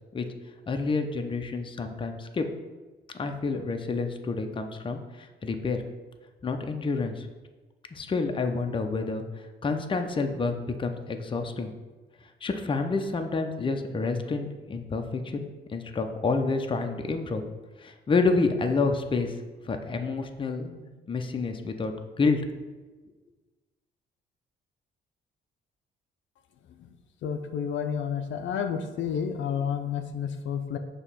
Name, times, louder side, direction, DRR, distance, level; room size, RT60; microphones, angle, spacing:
voice 1, 0.7-2.5 3.1-5.8 6.4-7.3 7.9-9.2 9.6-11.7 12.4-17.4 17.8-19.4 19.6-22.4, left 4 dB, 25° left, 5 dB, 0.6 m, -29 dB
voice 2, 27.2-30.8, left 7 dB, 70° left, 7 dB, 0.5 m, -30 dB
6.3 x 3.0 x 5.6 m, 1.3 s
cardioid pair, 90°, 20 cm